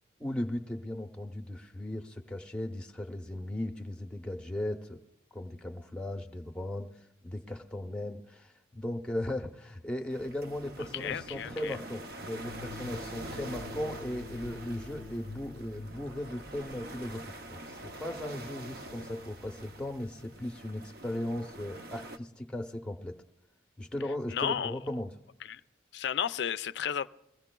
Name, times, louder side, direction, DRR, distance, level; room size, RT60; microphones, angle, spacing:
voice 1, 0.2-5.0 5.3-6.9 7.2-23.2 23.8-25.1, left 1 dB, 5° left, 0.8 m, -37 dB
sound 1, 10.1-22.2, right 1 dB, 55° right, 0.6 m, -45 dB
voice 2, 10.9-11.8 24.3-24.7 25.4-25.6 25.9-27.1, left 8 dB, 65° left, 0.4 m, -33 dB
sound 2, 12.3-17.7, left 2 dB, 80° right, 3.7 m, -47 dB
21.5 x 15.5 x 2.3 m
head